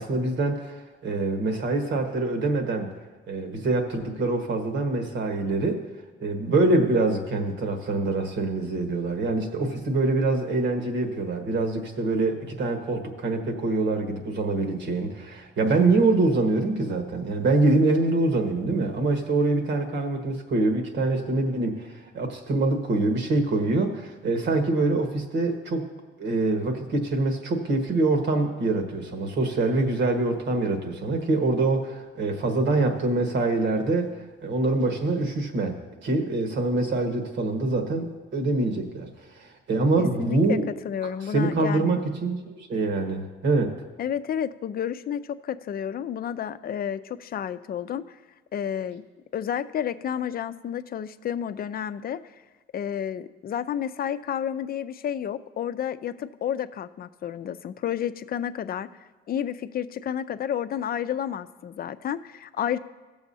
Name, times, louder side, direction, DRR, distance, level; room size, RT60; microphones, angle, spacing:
voice 1, 0.0-2.9 3.3-5.8 6.2-25.9 26.2-39.1 39.3-40.7 41.3-43.7, right 2 dB, 65° right, 4 dB, 1.5 m, -25 dB
voice 2, 40.0-40.6 40.8-42.0 44.0-48.2 48.5-49.0 49.3-52.2 52.7-58.9 59.3-62.8, left 9 dB, 50° left, 12 dB, 0.5 m, -31 dB
16.5 x 7.0 x 2.8 m, 1.3 s
cardioid pair, 90°, 20 cm